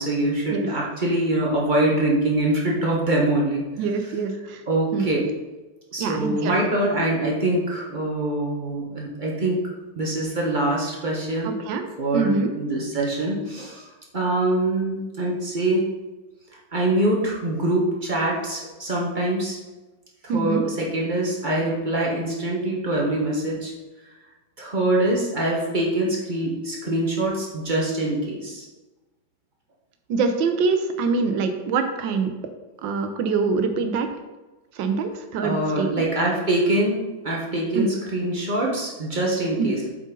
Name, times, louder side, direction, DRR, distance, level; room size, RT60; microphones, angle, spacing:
voice 1, 0.0-3.6 4.7-5.3 5.9-9.6 10.0-11.5 12.0-13.8 14.1-15.8 16.7-19.6 20.3-23.7 24.6-28.6 35.4-39.9, right 1 dB, 30° right, -3 dB, 1.2 m, -24 dB
voice 2, 3.8-4.6 4.9-5.1 6.0-6.5 11.4-11.9 12.1-12.5 20.3-20.6 30.1-32.3 32.8-34.1 34.8-36.1 37.7-37.9 39.6-39.7, right 4 dB, 80° right, 7 dB, 1.4 m, -24 dB
7.6 x 5.3 x 3.8 m, 1.1 s
omnidirectional pair, 2.1 m